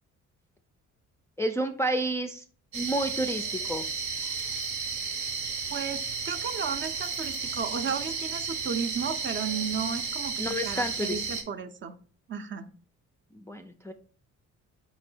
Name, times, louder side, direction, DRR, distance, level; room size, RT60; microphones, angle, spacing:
voice 1, 1.4-2.4 2.7-3.9 10.4-11.2 13.3-13.9, right 1 dB, 10° left, 5 dB, 0.3 m, -30 dB
sound 1, 2.7-11.4, right 5 dB, 70° right, 0.9 m, -33 dB
voice 2, 5.7-12.0 12.3-12.7, right 6 dB, 40° right, 10 dB, 0.5 m, -34 dB
5.4 x 2.0 x 4.4 m, 0.42 s
cardioid pair, 90°, 30 cm